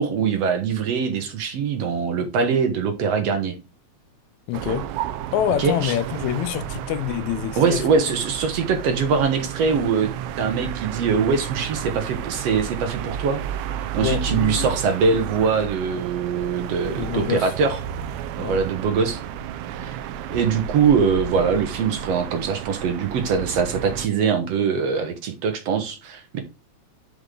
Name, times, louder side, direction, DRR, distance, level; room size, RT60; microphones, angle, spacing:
voice 1, 0.0-3.5 5.6-5.9 7.6-10.1 10.4-13.4 13.7-17.8 18.4-19.2 19.7-20.0 20.3-26.4, right 5 dB, 65° right, 2.0 m, -22 dB
voice 2, 4.5-4.9 5.3-7.8 14.0-14.7 16.9-17.5 18.4-18.6, left 12 dB, 80° left, 1.9 m, -26 dB
sound 1, 4.5-24.1, right 9 dB, 90° right, 2.1 m, -32 dB
6.9 x 5.4 x 3.7 m
omnidirectional pair, 3.4 m